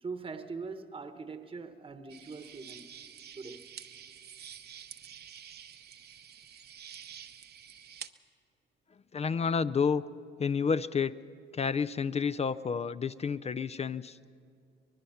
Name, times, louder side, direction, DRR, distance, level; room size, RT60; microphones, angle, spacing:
voice 1, 0.0-2.9 3.3-3.6, right 4 dB, 25° right, 8 dB, 1.1 m, -42 dB
sound 1, 2.1-8.1, right 9 dB, 55° right, 0.7 m, -48 dB
voice 2, 9.1-10.0 10.4-11.2 11.5-14.2, left 6 dB, 30° left, 13 dB, 0.4 m, -30 dB
24.5 x 20.0 x 5.7 m, 2.3 s
cardioid pair, 90°, 20 cm